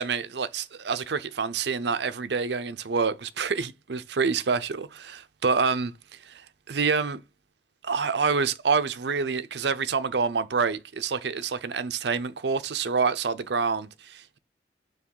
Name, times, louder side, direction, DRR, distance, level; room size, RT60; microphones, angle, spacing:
voice 1, 0.0-7.2 7.8-14.4, right 5 dB, 65° right, 0.6 m, -27 dB
7.1 x 3.1 x 4.6 m
head